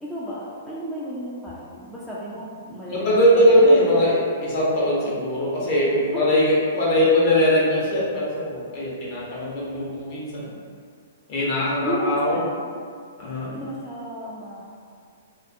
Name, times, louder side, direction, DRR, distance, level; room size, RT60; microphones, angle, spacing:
voice 1, 0.0-3.7 4.0-4.2 6.1-6.3 11.8-12.8 13.5-14.6, equal, ahead, -9 dB, 0.3 m, -33 dB
voice 2, 2.9-10.6 11.3-12.4 13.2-13.6, equal, 40° left, -7 dB, 0.8 m, -20 dB
2.4 x 2.3 x 2.5 m, 2.1 s
hypercardioid pair, 145°, 0 cm